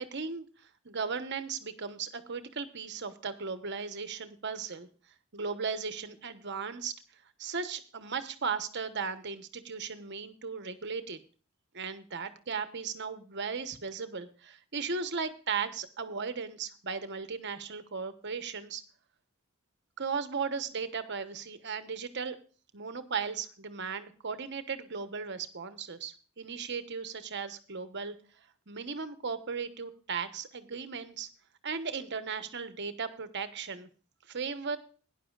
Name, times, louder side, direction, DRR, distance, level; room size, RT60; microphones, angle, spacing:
voice 1, 0.0-4.9 5.3-6.9 7.4-11.2 11.7-18.8 20.0-22.4 22.7-28.1 28.7-31.3 31.6-33.9 34.3-34.8, right 5 dB, 55° right, 10 dB, 1.1 m, -36 dB
17.5 x 10.5 x 2.4 m, 0.38 s
head